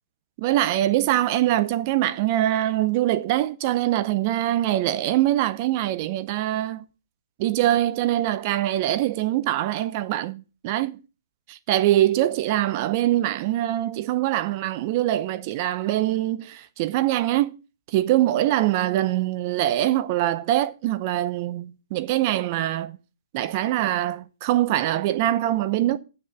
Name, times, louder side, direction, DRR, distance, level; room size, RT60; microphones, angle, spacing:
voice 1, 0.4-6.9 7.4-11.0 11.5-17.6 17.9-23.0 23.3-26.0, right 14 dB, 35° right, 0.6 m, -23 dB
7.5 x 6.6 x 6.0 m
hypercardioid pair, 140°, 2 cm